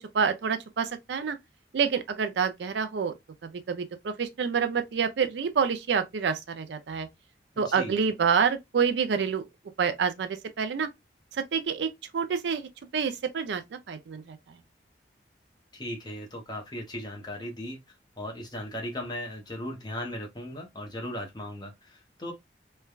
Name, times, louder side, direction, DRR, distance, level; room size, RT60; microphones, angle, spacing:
voice 1, 0.1-1.4 1.7-3.1 3.4-7.1 7.6-9.4 9.8-10.9 11.3-14.6, right 6 dB, 75° right, 0.4 m, -28 dB
voice 2, 7.5-7.9 15.7-17.8 18.2-22.3, left 1 dB, 25° left, 0.7 m, -37 dB
3.1 x 2.2 x 2.3 m
head